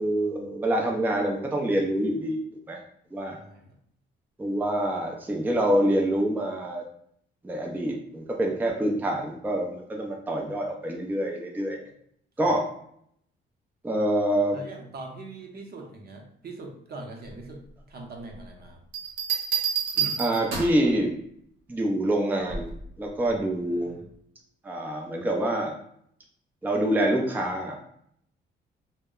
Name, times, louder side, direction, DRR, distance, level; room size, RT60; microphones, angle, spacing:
voice 1, 0.0-2.4 2.7-2.8 3.1-3.4 4.4-6.8 7.4-11.8 12.4-12.7 13.8-14.6 20.2-21.1 21.7-22.7 23.0-23.9 24.6-25.7 26.6-27.8, right 1 dB, 10° right, 1 dB, 0.4 m, -26 dB
voice 2, 3.3-3.8 12.4-12.5 14.5-18.8 19.9-20.2 23.3-23.5 23.7-24.1, right 2 dB, 50° right, 1 dB, 0.7 m, -42 dB
sound 1, 18.9-20.9 22.5-22.8, right 7 dB, 85° right, 0.8 m, -28 dB
2.1 x 2.0 x 3.6 m, 0.68 s
cardioid pair, 90°, 20 cm